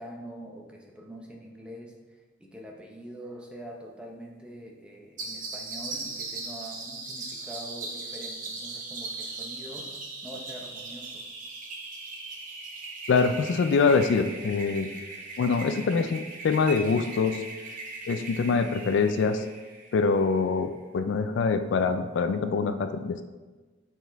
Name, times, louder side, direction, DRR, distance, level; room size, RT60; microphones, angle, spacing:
voice 1, 0.0-1.9 2.4-11.3, right 1 dB, 5° right, 0 dB, 0.7 m, -44 dB
sound 1, 5.2-20.4, right 3 dB, 40° right, 0.9 m, -39 dB
voice 2, 13.1-14.9 15.4-17.4 18.1-19.4 19.9-23.2, left 4 dB, 70° left, 9 dB, 0.3 m, -24 dB
6.3 x 4.5 x 3.4 m, 1.3 s
head